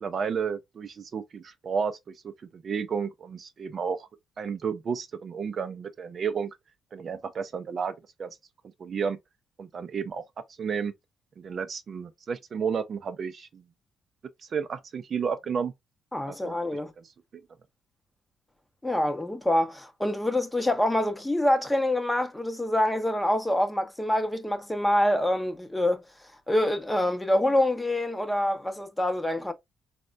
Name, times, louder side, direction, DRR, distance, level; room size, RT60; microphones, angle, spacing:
voice 1, 0.0-4.1 4.4-6.6 6.9-8.4 8.8-9.2 9.6-10.2 10.6-10.9 11.4-13.6 14.5-15.7 16.3-17.1, right 6 dB, 50° right, 0.4 m, -32 dB
voice 2, 16.1-16.9 18.8-26.0 26.5-29.5, left 1 dB, 10° left, 0.7 m, -26 dB
4.1 x 2.1 x 2.4 m
cardioid pair, 90°, 0 cm